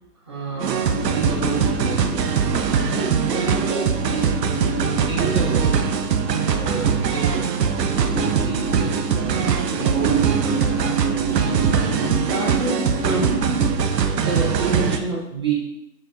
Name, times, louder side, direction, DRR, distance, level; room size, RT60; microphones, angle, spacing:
voice 1, 0.3-2.3 2.8-4.4 5.1-5.7 6.5-7.5 8.3-13.4 14.2-15.5, right 3 dB, 20° right, -7 dB, 0.5 m, -29 dB
sound 1, 0.6-15.0, right 7 dB, 85° right, 0.5 m, -22 dB
sound 2, 0.9-13.7, right 2 dB, 20° left, 1.3 m, -29 dB
4.3 x 2.4 x 3.4 m, 0.82 s
figure-of-eight pair, 145°, 48 cm